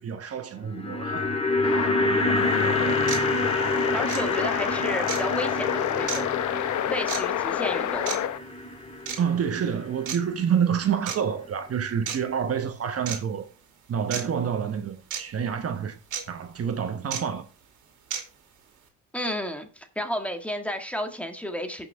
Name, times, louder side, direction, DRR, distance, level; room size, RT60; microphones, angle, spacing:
voice 1, 0.0-1.4 9.2-13.5 13.9-16.0 16.3-17.5, right 7 dB, 50° right, 1.1 m, -28 dB
sound 1, 0.6-10.8 11.1-11.2, left 1 dB, 20° left, 2.2 m, -28 dB
sound 2, 1.6-8.4, left 11 dB, 75° left, 0.8 m, -28 dB
sound 3, 2.4-2.5 3.1-3.2 4.1-4.2 5.1-5.2 6.1-6.2 7.1-7.2 8.1-8.2 9.1-9.2 10.1-10.2 11.1-11.2 12.1-12.2 13.1-13.2 14.1-14.2 15.1-15.2 16.1-16.2 17.1-17.2 18.1-18.2, right 8 dB, 80° right, 2.4 m, -31 dB
voice 2, 3.9-6.3 6.9-8.1 19.1-21.9, equal, 5° left, 1.7 m, -32 dB
16.0 x 5.8 x 3.4 m
cardioid pair, 90°, 30 cm